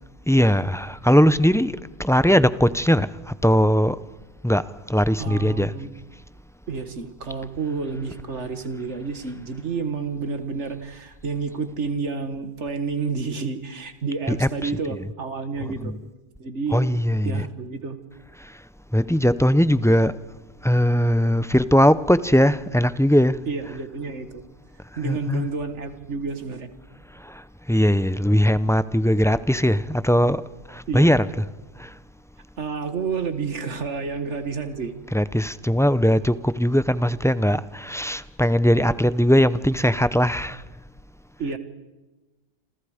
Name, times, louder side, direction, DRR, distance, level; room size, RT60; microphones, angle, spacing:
voice 1, 0.3-4.0 4.4-5.7 14.3-15.0 15.6-16.0 16.7-17.5 18.4-18.6 18.9-20.2 20.6-23.4 25.0-25.5 27.1-30.4 30.7-31.5 31.8-31.9 35.1-40.6, equal, 5° left, 0.4 m, -20 dB
voice 2, 5.2-5.9 6.7-15.9 16.4-16.8 17.2-18.0 23.5-24.4 25.0-26.7 30.9-31.1 32.6-34.9 41.4-41.6, right 4 dB, 90° right, 2.0 m, -30 dB
28.0 x 27.0 x 5.1 m
omnidirectional pair, 1.2 m